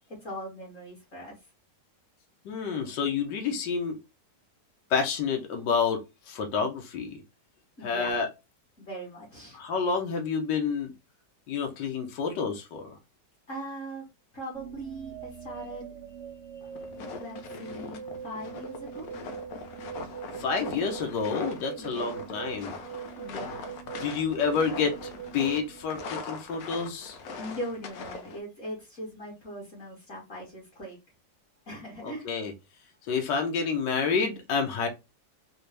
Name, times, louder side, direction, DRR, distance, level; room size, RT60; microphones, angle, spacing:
voice 1, 0.1-1.5 7.8-8.2 8.8-9.6 13.5-14.1 14.3-15.9 17.2-19.1 21.7-22.2 23.2-23.7 27.4-31.0 31.7-32.3, right 1 dB, 50° left, 1.7 m, -40 dB
voice 2, 2.4-4.0 4.9-7.2 7.8-8.3 9.5-10.9 11.5-13.0 20.4-22.8 23.3-23.5 24.0-24.9 25.3-27.2 32.0-32.5 33.1-34.9, left 5 dB, 80° left, 1.5 m, -29 dB
sound 1, 14.5-26.6, right 8 dB, 75° right, 0.6 m, -42 dB
sound 2, 16.6-28.4, left 4 dB, 65° left, 1.0 m, -41 dB
4.2 x 2.1 x 3.2 m
omnidirectional pair, 1.9 m